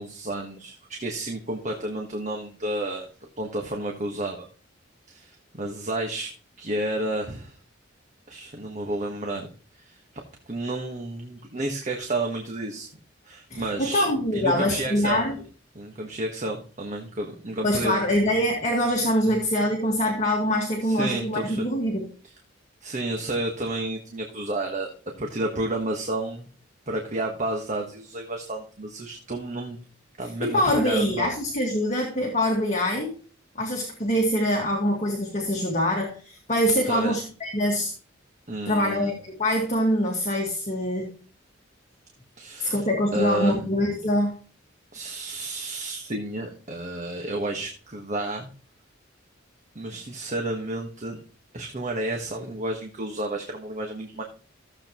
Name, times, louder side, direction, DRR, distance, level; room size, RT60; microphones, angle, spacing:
voice 1, 0.0-3.1 3.4-4.5 5.1-6.3 6.6-7.6 8.3-10.0 10.5-12.9 13.2-14.1 14.3-15.2 15.7-18.0 19.3-19.4 20.8-21.7 22.2-22.3 22.8-24.9 25.2-26.5 26.9-29.8 30.2-31.3 36.9-37.1 38.5-39.1 42.4-42.8 43.1-43.6 44.9-48.5 49.7-51.2 51.5-54.2, right 2 dB, 40° right, 2 dB, 1.4 m, -31 dB
voice 2, 13.5-15.3 17.6-22.0 30.4-33.1 33.6-37.9 38.7-41.1 42.6-44.3, equal, 35° left, -1 dB, 1.9 m, -24 dB
14.5 x 7.7 x 3.0 m, 0.39 s
head